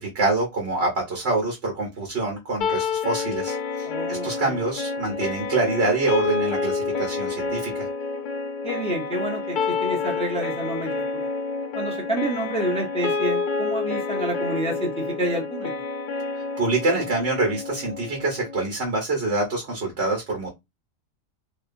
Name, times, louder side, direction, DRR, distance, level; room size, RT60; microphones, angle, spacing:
voice 1, 0.0-7.9 16.3-20.5, right 3 dB, 55° right, 1.1 m, -26 dB
sound 1, 2.6-18.6, left 4 dB, 70° left, 0.4 m, -28 dB
voice 2, 3.8-4.6 8.6-11.0 11.7-15.7, right 1 dB, 5° left, 0.7 m, -29 dB
2.8 x 2.3 x 2.5 m
omnidirectional pair, 1.3 m